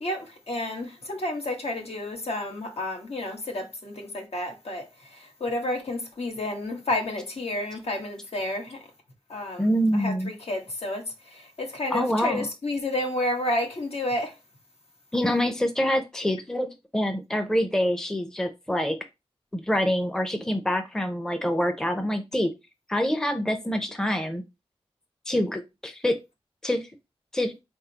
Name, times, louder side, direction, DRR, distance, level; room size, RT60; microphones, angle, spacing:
voice 1, 0.0-8.8 9.3-14.3, left 1 dB, 70° left, 1.3 m, -31 dB
voice 2, 9.6-10.3 11.9-12.5 15.1-19.0 19.5-22.5 22.9-24.4 25.3-26.2 26.6-26.9 27.3-27.5, equal, 5° left, 0.6 m, -26 dB
4.4 x 3.6 x 2.8 m
wide cardioid pair, 100°, 11 cm